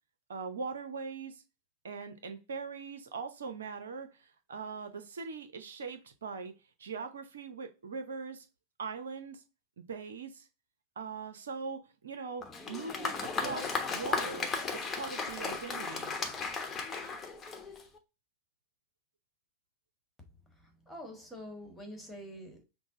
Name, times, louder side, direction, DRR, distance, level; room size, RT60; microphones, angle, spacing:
voice 1, 0.3-1.4 1.8-6.5 6.8-8.5 8.8-9.4 9.8-10.5 11.0-16.1, right 5 dB, 65° right, 0.7 m, -41 dB
Applause, 12.4-18.0, left 4 dB, 20° left, 1.0 m, -35 dB
voice 2, 20.5-22.6, equal, 5° left, 1.5 m, -46 dB
6.1 x 2.1 x 3.9 m
figure-of-eight pair, 90°, 0 cm